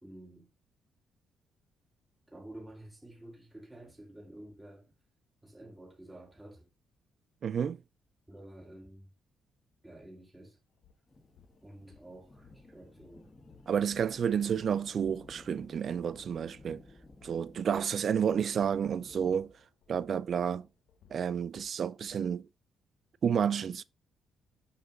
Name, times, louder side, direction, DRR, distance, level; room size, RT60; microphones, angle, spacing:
voice 1, 0.0-0.5 2.3-5.0 5.4-6.7 8.3-9.1 9.8-10.6 11.6-13.3, right 1 dB, 15° right, 2.2 m, -50 dB
voice 2, 7.4-7.8 13.7-16.8 17.2-19.5 19.9-20.7 21.1-22.5 23.2-23.8, right 7 dB, 55° right, 0.4 m, -30 dB
sound 1, 10.3-10.4 10.8-22.2, left 8 dB, 75° left, 1.2 m, -63 dB
sound 2, 11.1-19.3, left 2 dB, 20° left, 1.7 m, -56 dB
6.6 x 5.1 x 3.9 m
cardioid pair, 90°, 0 cm